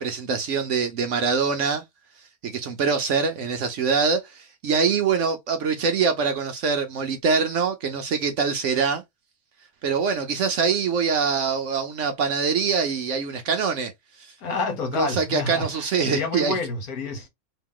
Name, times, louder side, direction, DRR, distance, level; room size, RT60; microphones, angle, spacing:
voice 1, 0.0-1.8 2.4-9.0 9.8-13.9 14.2-14.3 14.9-16.6, right 5 dB, 65° right, 0.8 m, -24 dB
voice 2, 14.4-17.3, left 3 dB, 70° left, 1.6 m, -29 dB
2.9 x 2.9 x 3.6 m
omnidirectional pair, 1.6 m